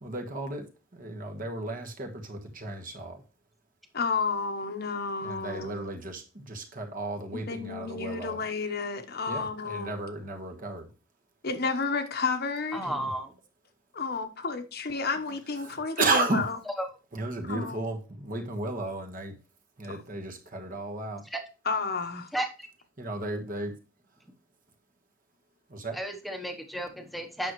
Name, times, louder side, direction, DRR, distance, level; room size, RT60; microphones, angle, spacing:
voice 1, 0.0-0.7 0.9-3.2 5.2-8.4 9.3-10.9 12.8-13.1 15.6-16.4 17.1-19.3 19.8-21.2 23.0-23.7 25.7-26.0, right 2 dB, 40° right, 1.4 m, -34 dB
voice 2, 3.9-5.8 7.5-9.9 11.4-12.8 13.9-16.5 17.5-17.7 21.7-22.3, left 4 dB, 50° left, 1.0 m, -31 dB
voice 3, 12.7-13.3 16.8-16.9 21.3-21.4 22.3-22.7 25.9-27.5, right 1 dB, ahead, 1.0 m, -33 dB
9.0 x 6.3 x 3.1 m
head